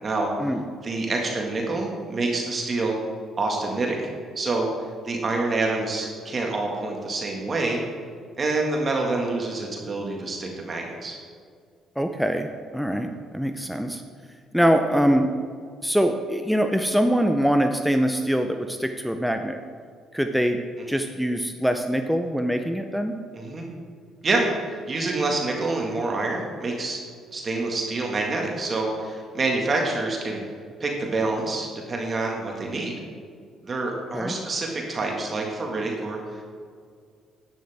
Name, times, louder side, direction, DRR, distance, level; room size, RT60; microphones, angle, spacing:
voice 1, 0.8-3.0 3.4-4.0 4.4-4.7 5.0-7.8 8.4-11.2 20.8-20.9 23.3-23.7 24.2-24.5 24.9-27.0 27.3-30.4 30.8-32.9 33.6-36.4, right 3 dB, 35° right, 0 dB, 1.8 m, -27 dB
voice 2, 12.0-14.0 14.5-15.3 15.8-19.6 20.1-20.6 20.9-23.2 34.1-34.3, equal, ahead, 6 dB, 0.6 m, -23 dB
10.5 x 9.3 x 3.5 m, 2.1 s
cardioid pair, 85°, 0 cm